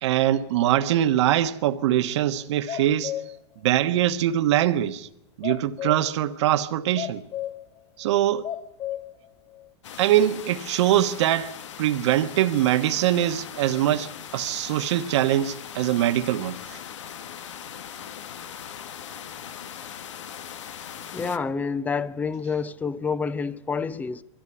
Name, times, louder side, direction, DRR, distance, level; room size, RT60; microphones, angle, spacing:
voice 1, 0.0-3.1 3.6-5.1 5.4-7.2 8.0-8.5 10.0-16.8, right 12 dB, 70° right, 1.3 m, -23 dB
sound 1, 2.4-3.4 3.8-3.9 5.4-6.1 7.0-7.8 8.1-8.2 8.4-9.3 9.5-9.7, left 11 dB, 35° left, 3.3 m, -33 dB
sound 2, 9.8-21.4, left 9 dB, 85° left, 1.4 m, -40 dB
voice 2, 21.1-24.2, left 5 dB, 10° left, 0.7 m, -28 dB
23.0 x 14.5 x 9.7 m
supercardioid pair, 140°, 15 cm